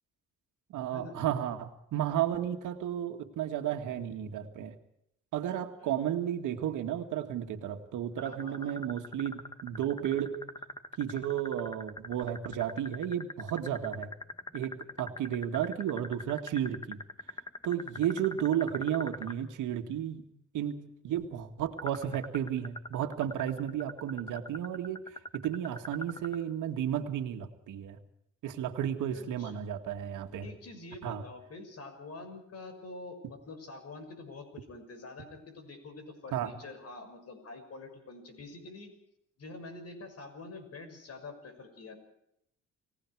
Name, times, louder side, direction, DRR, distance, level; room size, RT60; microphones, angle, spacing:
voice 1, 0.7-4.7 5.3-10.3 11.0-14.1 14.5-17.0 17.6-20.2 20.5-25.0 25.3-28.0 28.4-30.5 31.0-31.2 36.3-36.5, right 10 dB, 85° right, 6 dB, 2.1 m, -33 dB
voice 2, 8.2-8.8 13.8-14.0 29.1-29.6 30.4-38.9 39.4-42.0, left 3 dB, 55° left, 8 dB, 6.4 m, -46 dB
sound 1, 8.2-19.4 21.8-26.4, left 2 dB, 15° left, 1.9 m, -42 dB
29.5 x 18.0 x 4.9 m, 0.76 s
cardioid pair, 90°, 30 cm